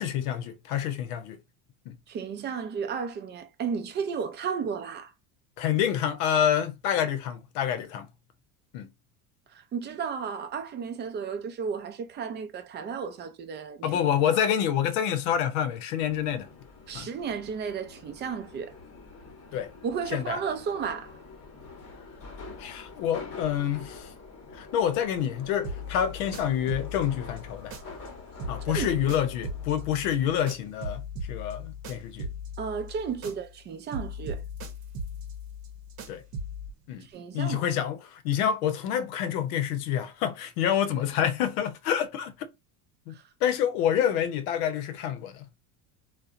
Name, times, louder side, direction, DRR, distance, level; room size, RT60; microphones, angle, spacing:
voice 1, 0.0-1.4 1.9-2.0 5.6-8.1 8.7-8.9 13.8-16.5 16.9-17.1 19.5-19.7 20.1-20.4 22.6-24.1 24.5-27.7 28.5-32.3 36.1-36.2 36.9-37.1 37.3-42.5 43.1-43.2 43.4-45.6, left 9 dB, 85° left, 0.7 m, -27 dB
voice 2, 2.1-5.1 9.7-14.0 14.3-14.4 16.9-18.7 19.8-21.1 28.7-28.9 32.6-34.4 37.1-37.6, right 6 dB, 25° right, 0.4 m, -33 dB
Subway metro underground, 16.0-30.3, left 3 dB, 35° left, 0.9 m, -46 dB
sound 1, 25.6-28.1 28.4-33.6 33.9-36.7, left 1 dB, 60° right, 0.8 m, -38 dB
2.8 x 2.1 x 2.4 m
supercardioid pair, 125°, 42 cm